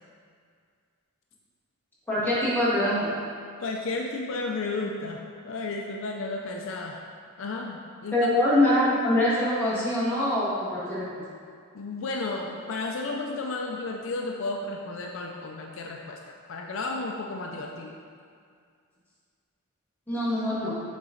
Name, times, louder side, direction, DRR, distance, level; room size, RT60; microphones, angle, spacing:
voice 1, 2.1-3.1 8.1-11.1 20.1-20.7, left 1 dB, 10° left, -10 dB, 1.6 m, -24 dB
voice 2, 3.6-7.0 7.4-8.3 11.7-16.2 16.5-18.0, left 3 dB, 60° left, 1 dB, 0.4 m, -33 dB
7.3 x 3.9 x 3.8 m, 2.2 s
head